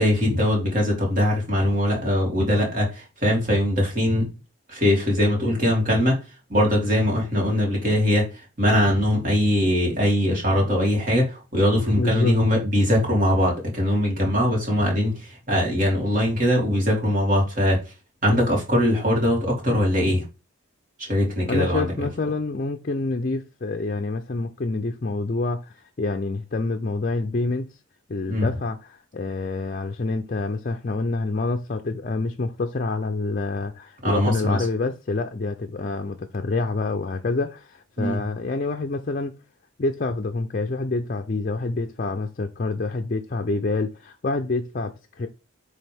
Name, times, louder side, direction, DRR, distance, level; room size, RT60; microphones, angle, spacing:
voice 1, 0.0-4.3 4.7-6.2 6.5-17.8 18.2-20.2 21.0-21.9 28.3-28.5 34.0-34.6 38.0-38.2, equal, 40° right, 2.9 m, -21 dB
voice 2, 12.0-12.4 21.5-27.7 28.1-39.3 39.8-45.3, left 3 dB, 40° left, 0.5 m, -27 dB
8.8 x 3.5 x 3.5 m
head